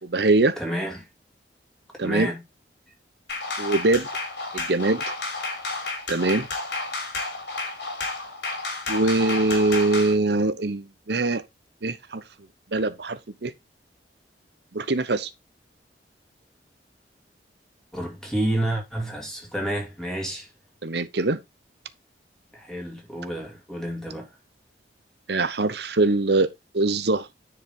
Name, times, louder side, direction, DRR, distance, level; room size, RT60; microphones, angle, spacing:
voice 1, 0.0-0.6 2.0-2.3 3.6-4.1 4.5-5.1 6.1-6.5 8.9-11.4 11.8-12.2 12.7-13.5 14.7-15.3 20.8-21.4 25.3-26.5 26.7-27.3, right 2 dB, 70° right, 0.9 m, -23 dB
voice 2, 0.6-1.1 2.0-2.4 17.9-20.5 22.5-24.3, right 1 dB, 5° left, 2.6 m, -29 dB
sound 1, 3.3-10.2, left 3 dB, 70° left, 3.9 m, -31 dB
9.9 x 5.0 x 3.7 m
head